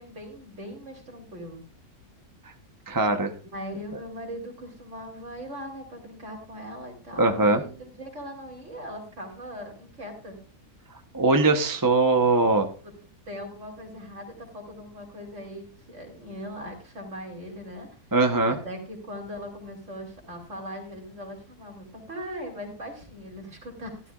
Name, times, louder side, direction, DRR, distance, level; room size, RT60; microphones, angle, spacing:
voice 1, 0.0-1.6 2.9-3.0 3.4-10.4 13.3-17.9 18.5-24.0, equal, 50° right, 2 dB, 3.7 m, -40 dB
voice 2, 2.9-3.3 7.2-7.6 11.1-12.7 18.1-18.6, right 3 dB, 15° right, 5 dB, 0.8 m, -21 dB
15.0 x 12.5 x 2.4 m, 0.38 s
omnidirectional pair, 1.6 m